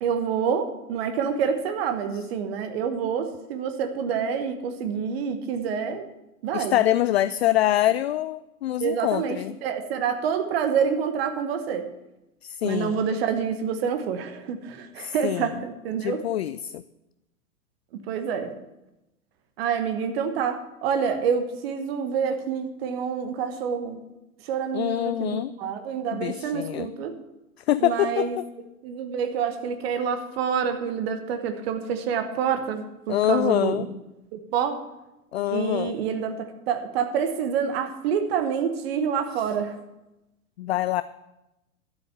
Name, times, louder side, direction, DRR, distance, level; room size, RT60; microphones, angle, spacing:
voice 1, 0.0-6.0 6.4-6.8 8.8-11.9 12.6-16.2 18.1-18.5 19.6-24.0 24.4-27.1 27.8-28.4 28.8-33.9 34.3-34.8 35.5-39.8, right 7 dB, 45° right, 8 dB, 1.2 m, -27 dB
voice 2, 6.5-9.6 12.4-13.0 15.0-15.6 16.0-16.8 24.7-25.5 26.1-26.9 27.7-28.5 33.1-33.9 35.3-36.0 39.4-39.5 40.6-41.0, left 13 dB, 50° left, 15 dB, 0.4 m, -25 dB
12.0 x 8.0 x 6.9 m, 0.95 s
figure-of-eight pair, 105°, 44 cm